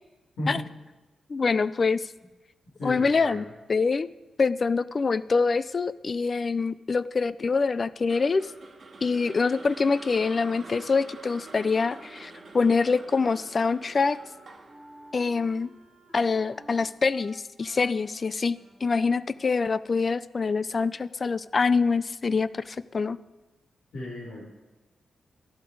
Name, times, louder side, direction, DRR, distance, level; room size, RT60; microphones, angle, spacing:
voice 1, 1.3-2.1 2.8-4.1 4.4-8.5 9.0-14.2 15.1-15.7 16.1-23.2, left 4 dB, 35° left, 17 dB, 0.4 m, -25 dB
voice 2, 2.8-3.4 23.9-24.4, left 1 dB, 85° left, -7 dB, 4.5 m, -34 dB
sound 1, 8.1-16.3, right 3 dB, 45° right, 1.9 m, -47 dB
Wind instrument woodwind instrument, 12.2-19.6, equal, 5° right, 2.8 m, -53 dB
12.5 x 11.5 x 4.7 m, 1.1 s
wide cardioid pair, 135°, 0 cm